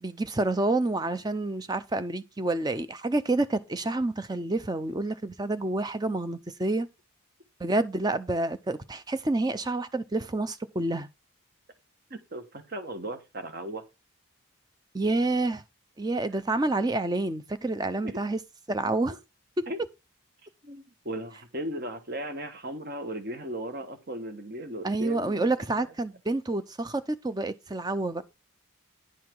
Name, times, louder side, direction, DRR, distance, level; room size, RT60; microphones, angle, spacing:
voice 1, 0.0-6.9 7.6-11.1 14.9-15.6 16.0-18.4 18.7-19.2 19.6-19.7 24.8-28.2, right 2 dB, 20° right, 0.6 m, -28 dB
voice 2, 12.1-13.8 18.0-18.2 19.7-19.8 20.6-25.5 25.8-25.9 28.2-28.3, right 1 dB, 45° right, 1.3 m, -37 dB
10.5 x 5.7 x 4.6 m
head